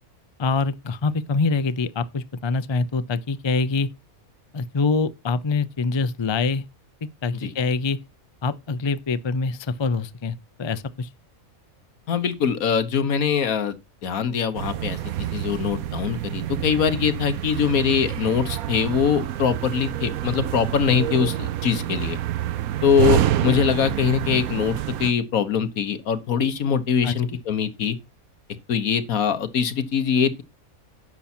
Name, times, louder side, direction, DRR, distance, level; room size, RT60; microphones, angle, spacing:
voice 1, 0.4-3.9 4.5-6.6 7.2-8.0 8.4-11.1 27.0-27.4, left 4 dB, 35° left, 0.4 m, -25 dB
voice 2, 12.1-13.7 14.0-22.2 22.8-28.0 28.7-30.4, left 7 dB, 80° left, 1.6 m, -23 dB
sound 1, 14.5-25.1, right 12 dB, 90° right, 1.2 m, -27 dB
10.5 x 7.1 x 4.4 m
omnidirectional pair, 1.5 m